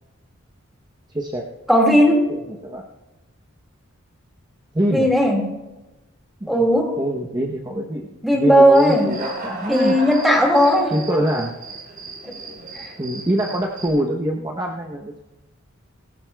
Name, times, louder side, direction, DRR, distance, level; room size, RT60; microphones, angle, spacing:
voice 1, 1.1-1.5 2.3-2.8 4.7-5.1 6.4-6.7 7.0-10.0 10.9-11.5 13.0-15.2, right 1 dB, 20° right, 0 dB, 0.8 m, -24 dB
voice 2, 1.7-2.2 4.9-5.5 6.5-6.9 8.2-9.1 9.7-11.0, equal, ahead, 0 dB, 2.0 m, -16 dB
Human voice / Cricket, 8.7-13.9, right 2 dB, 45° right, 3.4 m, -34 dB
19.0 x 17.0 x 2.3 m, 1.0 s
head